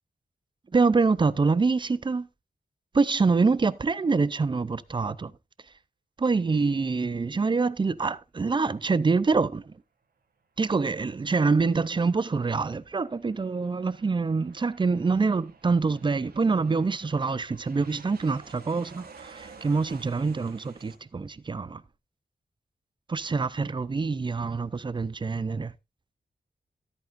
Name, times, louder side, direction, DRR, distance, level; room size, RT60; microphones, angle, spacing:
voice 1, 0.7-2.3 2.9-5.3 6.2-9.7 10.6-21.8 23.1-25.7, right 4 dB, 30° right, 0.5 m, -25 dB
Aircraft, 11.0-21.0, right 5 dB, 75° right, 2.0 m, -53 dB
13.0 x 9.0 x 2.5 m
wide cardioid pair, 105°, 16 cm